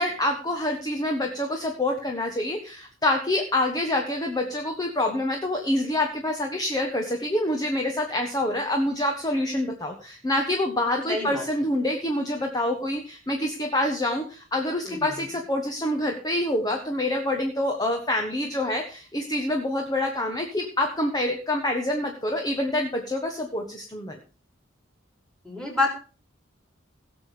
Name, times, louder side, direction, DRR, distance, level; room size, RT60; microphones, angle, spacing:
voice 1, 0.0-24.2, left 1 dB, 20° left, 3 dB, 1.4 m, -26 dB
voice 2, 11.1-11.4 14.8-15.2 25.4-25.9, left 2 dB, 5° left, 1 dB, 4.1 m, -27 dB
17.5 x 6.9 x 5.1 m, 0.37 s
head